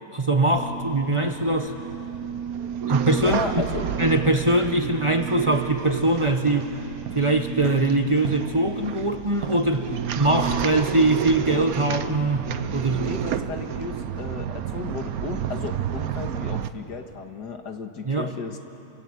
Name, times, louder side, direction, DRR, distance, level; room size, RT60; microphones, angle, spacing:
voice 1, 0.1-1.7 2.9-3.4 4.0-6.7 7.1-13.0 18.0-18.4, right 2 dB, 20° right, 5 dB, 1.0 m, -22 dB
sound 1, 0.5-16.7, right 8 dB, 65° right, 1.2 m, -31 dB
voice 2, 3.2-3.9 13.0-18.6, left 4 dB, 90° left, 5 dB, 2.1 m, -34 dB
28.5 x 25.0 x 8.1 m, 2.9 s
omnidirectional pair, 1.7 m